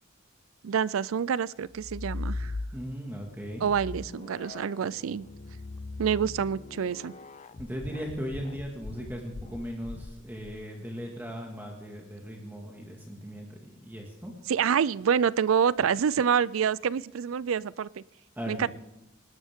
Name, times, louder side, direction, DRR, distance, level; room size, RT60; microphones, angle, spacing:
voice 1, 0.6-2.5 3.6-5.3 6.0-7.1 14.5-18.0 18.5-18.7, right 7 dB, 85° right, 21 dB, 0.4 m, -27 dB
sound 1, 1.7-3.1 3.6-10.6, left 2 dB, 35° left, 0.5 m, -39 dB
voice 2, 2.7-3.7 7.6-14.3 18.4-18.7, equal, 10° right, -1 dB, 1.9 m, -38 dB
25.5 x 12.5 x 3.7 m, 0.93 s
head